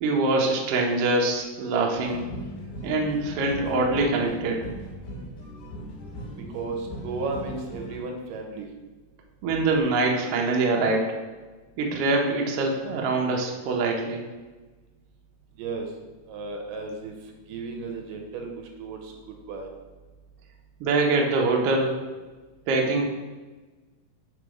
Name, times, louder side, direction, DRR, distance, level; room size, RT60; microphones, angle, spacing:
voice 1, 0.0-2.3 2.8-4.6 9.4-11.2 11.8-14.2 20.8-22.0 22.7-23.1, right 3 dB, 70° right, 0 dB, 1.4 m, -24 dB
sound 1, 2.0-8.0, left 1 dB, 80° left, 3.5 m, -39 dB
voice 2, 6.4-8.7 15.6-15.9 16.3-17.1 17.5-19.7, right 3 dB, 85° right, 2 dB, 2.5 m, -34 dB
6.6 x 3.8 x 5.1 m, 1.3 s
omnidirectional pair, 3.9 m